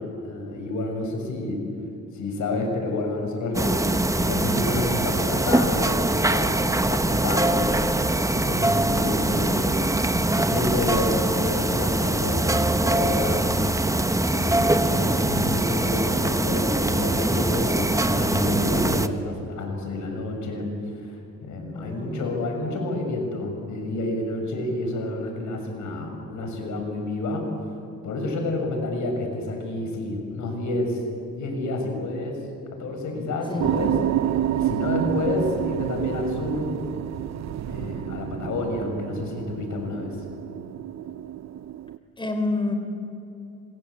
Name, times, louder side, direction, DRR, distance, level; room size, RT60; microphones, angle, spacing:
voice 1, 0.0-1.6 2.1-9.7 10.3-20.7 21.0-27.5 28.0-31.0 31.3-32.4 32.7-34.0 34.5-36.7 37.7-40.2, left 2 dB, 75° left, 3 dB, 6.6 m, -29 dB
sound 1, 3.5-19.1, right 2 dB, 10° right, 1.3 m, -23 dB
voice 2, 21.7-22.3 33.5-33.8 42.2-42.7, left 2 dB, 15° left, 6 dB, 3.7 m, -28 dB
sound 2, 33.6-42.0, right 12 dB, 60° right, 0.8 m, -29 dB
26.0 x 26.0 x 8.6 m, 2.7 s
cardioid pair, 90°, 30 cm